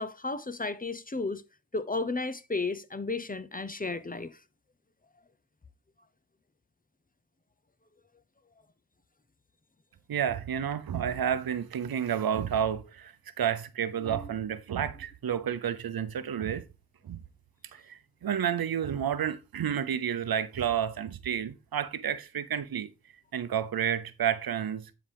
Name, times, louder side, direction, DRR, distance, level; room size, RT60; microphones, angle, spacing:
voice 1, 0.0-1.4 1.7-4.3 14.0-14.2, left 3 dB, 25° left, 0.8 m, -33 dB
voice 2, 10.1-16.6 17.0-17.2 17.7-22.9 23.3-24.9, right 9 dB, 75° right, 0.7 m, -30 dB
10.0 x 5.0 x 3.5 m
cardioid pair, 55°, 36 cm